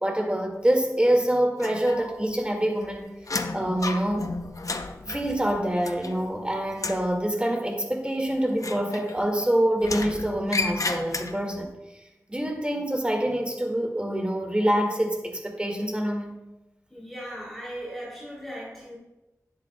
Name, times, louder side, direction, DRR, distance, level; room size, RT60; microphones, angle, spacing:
voice 1, 0.0-3.1 3.5-4.3 5.1-12.0 12.3-16.4, right 1 dB, 15° right, 2 dB, 2.0 m, -26 dB
sound 1, 1.6-2.4 2.6-6.4 6.7-7.1 8.5-9.4 9.8-11.6, left 3 dB, 65° left, 0.6 m, -33 dB
voice 2, 16.9-18.9, equal, 5° left, -6 dB, 3.2 m, -38 dB
11.5 x 10.0 x 2.3 m, 0.98 s
wide cardioid pair, 55°, 6 cm